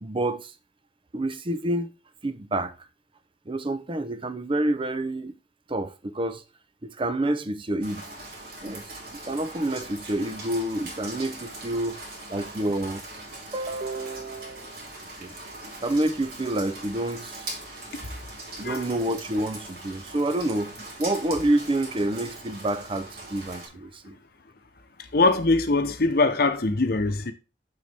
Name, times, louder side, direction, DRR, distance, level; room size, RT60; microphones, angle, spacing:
voice 1, 0.0-0.5 1.1-1.9 2.2-2.7 3.5-5.3 5.7-6.4 6.8-8.0 8.6-8.8 9.3-12.0 12.3-13.0 13.5-14.7 15.2-15.3 15.8-17.5 18.6-20.7 21.0-24.2, right 1 dB, 30° right, 0.7 m, -28 dB
Rain, 7.8-23.7, right 2 dB, 60° right, 2.8 m, -41 dB
voice 2, 25.1-27.3, left 3 dB, 60° left, 0.9 m, -22 dB
6.8 x 6.3 x 3.4 m
head